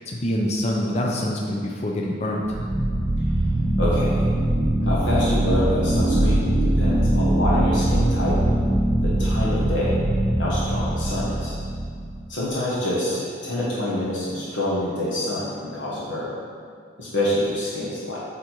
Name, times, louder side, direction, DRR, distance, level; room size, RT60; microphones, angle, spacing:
voice 1, 0.0-2.6, left 1 dB, 30° left, -1 dB, 0.6 m, -25 dB
sound 1, 2.4-12.2, right 1 dB, 25° right, 0.9 m, -22 dB
voice 2, 3.8-4.3 4.8-8.4 9.0-10.0 10.3-11.5 12.3-16.4 17.0-18.2, left 1 dB, 65° left, -7 dB, 1.4 m, -26 dB
8.3 x 3.7 x 4.6 m, 2.1 s
head